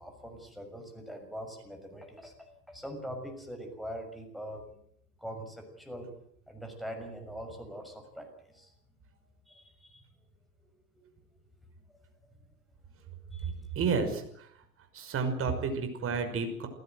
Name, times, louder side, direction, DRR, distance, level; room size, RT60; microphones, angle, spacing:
voice 1, 0.0-4.6 5.2-6.1 6.5-8.7 9.5-10.0 10.9-11.0 11.9-12.0 13.3-13.7, equal, ahead, 3 dB, 6.5 m, -43 dB
voice 2, 13.8-14.5 14.9-16.7, right 5 dB, 25° right, 6 dB, 5.6 m, -31 dB
28.5 x 16.0 x 8.0 m, 0.70 s
figure-of-eight pair, 90°, 48 cm